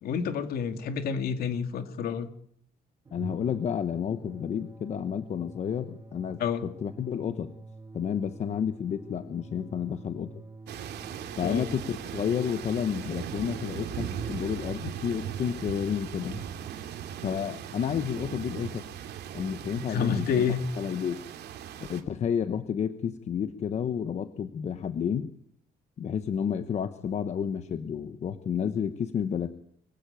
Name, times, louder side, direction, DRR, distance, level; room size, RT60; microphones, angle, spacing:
voice 1, 0.0-2.3 6.4-6.6 11.4-11.7 19.9-20.6, left 7 dB, 65° left, 8 dB, 2.5 m, -29 dB
voice 2, 3.1-7.5 7.9-10.4 11.4-16.4 17.2-18.8 19.3-21.2 21.8-25.3 26.0-29.6, left 8 dB, 40° left, 10 dB, 1.1 m, -31 dB
sound 1, 3.1-15.0, right 2 dB, 20° right, 1.4 m, -47 dB
sound 2, 10.7-22.0, right 9 dB, 75° right, 2.7 m, -39 dB
24.0 x 15.5 x 9.3 m, 0.64 s
cardioid pair, 170°, 17 cm